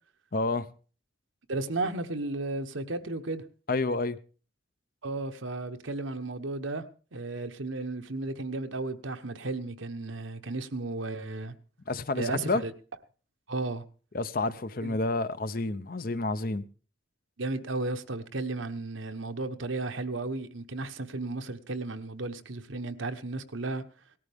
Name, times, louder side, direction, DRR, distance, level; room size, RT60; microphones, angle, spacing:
voice 1, 0.3-0.7 3.7-4.2 11.9-12.6 14.1-16.6, left 2 dB, 45° left, 0.7 m, -29 dB
voice 2, 1.5-3.4 5.0-6.8 7.1-11.5 12.2-12.7 13.5-13.8 14.8-15.0 17.4-23.8, right 2 dB, 80° right, 1.1 m, -34 dB
18.5 x 13.5 x 3.6 m
head